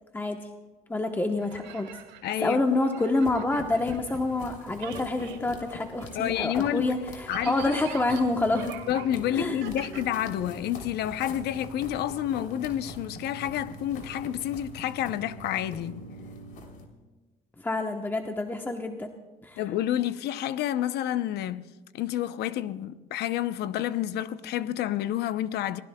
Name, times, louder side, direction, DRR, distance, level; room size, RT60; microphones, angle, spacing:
voice 1, 0.9-1.9 2.4-8.8 9.3-9.6 17.6-19.1 19.4-19.6, left 2 dB, 10° left, 1.0 m, -27 dB
sound 1, 1.3-4.5 4.7-10.7, right 9 dB, 85° right, 1.7 m, -45 dB
voice 2, 2.2-2.6 6.1-6.9 7.3-7.8 8.9-16.0 19.6-21.6 21.9-25.8, left 11 dB, 75° left, 0.7 m, -29 dB
sound 2, 3.2-16.8, left 1 dB, 55° left, 3.3 m, -43 dB
28.0 x 19.0 x 2.3 m
cardioid pair, 110°, 17 cm